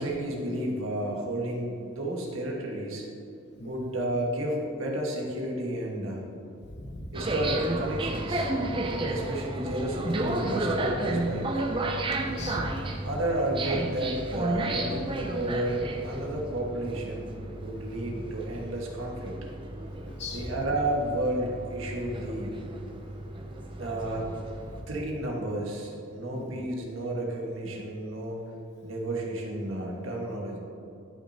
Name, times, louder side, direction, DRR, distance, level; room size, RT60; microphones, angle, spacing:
voice 1, 0.0-3.1 3.6-6.2 7.1-8.5 9.1-11.6 13.0-17.3 17.6-19.4 20.3-22.5 23.8-24.3 24.9-28.4 28.8-30.6, right 1 dB, 75° right, -1 dB, 1.6 m, -32 dB
voice 2, 6.7-7.1 9.3-9.4 12.2-12.9 20.0-20.5 24.7-24.9 26.4-26.5, left 2 dB, 50° left, 2 dB, 1.0 m, -40 dB
sound 1, 7.1-24.8, right 2 dB, 25° right, 0.5 m, -32 dB
12.0 x 6.3 x 2.8 m, 2.7 s
head